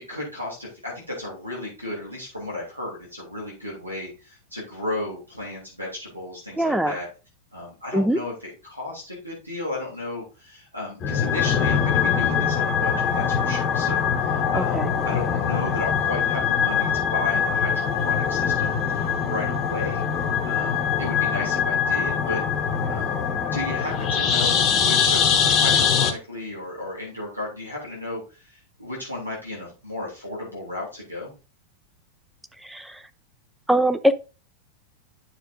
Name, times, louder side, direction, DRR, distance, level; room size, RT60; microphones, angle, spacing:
voice 1, 0.1-7.1 7.5-8.3 8.6-22.4 22.9-23.2 23.5-31.3, left 2 dB, 90° right, -4 dB, 3.4 m, -34 dB
voice 2, 6.6-7.0 7.9-8.2 14.5-14.9 32.6-33.0 33.7-34.1, equal, 5° right, 9 dB, 0.7 m, -22 dB
sound 1, 11.0-26.1, left 7 dB, 30° left, 1.1 m, -23 dB
10.0 x 6.5 x 2.6 m, 0.32 s
figure-of-eight pair, 90°, 0 cm